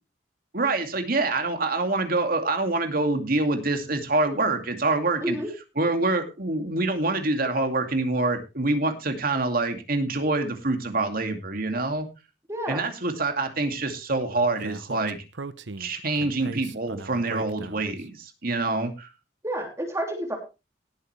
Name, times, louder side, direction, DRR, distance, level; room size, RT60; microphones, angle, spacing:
voice 1, 0.5-5.4 5.8-12.1 12.7-15.2 15.8-19.1, right 2 dB, 55° right, 6 dB, 2.4 m, -26 dB
voice 2, 12.5-12.8 19.4-20.4, right 1 dB, 15° right, 1 dB, 3.1 m, -29 dB
Speech, 14.6-18.0, right 3 dB, 75° right, 0.9 m, -38 dB
18.0 x 8.4 x 3.3 m, 0.28 s
head